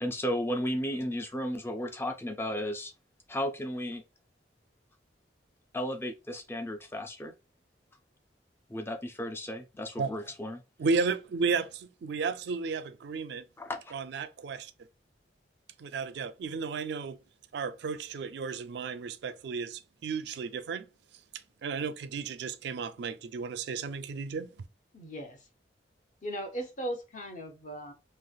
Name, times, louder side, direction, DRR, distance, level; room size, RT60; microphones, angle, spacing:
voice 1, 0.0-2.9 3.3-4.0 5.7-7.3 8.7-10.6 13.6-14.0, equal, 10° left, 0.4 m, -34 dB
voice 2, 10.8-13.4 13.9-14.7 15.8-17.2 17.5-20.9 21.6-24.5, right 4 dB, 65° right, 0.3 m, -33 dB
voice 3, 24.9-25.4 26.2-27.9, right 1 dB, 40° left, 0.7 m, -38 dB
3.1 x 2.8 x 2.3 m
head